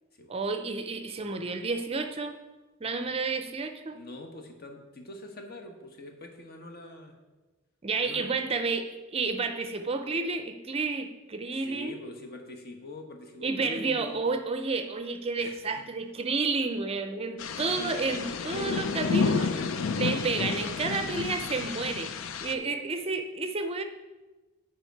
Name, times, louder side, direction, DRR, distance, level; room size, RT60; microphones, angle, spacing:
voice 1, 0.3-2.4 2.8-4.0 7.8-11.9 13.4-19.5 20.0-22.1 22.4-23.8, right 4 dB, 30° right, 7 dB, 0.5 m, -31 dB
voice 2, 3.9-7.1 8.0-8.3 11.5-14.2 15.4-15.9 18.5-19.7 22.5-22.7, left 1 dB, 50° left, 4 dB, 1.1 m, -44 dB
sound 1, 17.4-22.5, left 5 dB, 75° left, 0.5 m, -31 dB
9.9 x 5.1 x 4.6 m, 1.2 s
head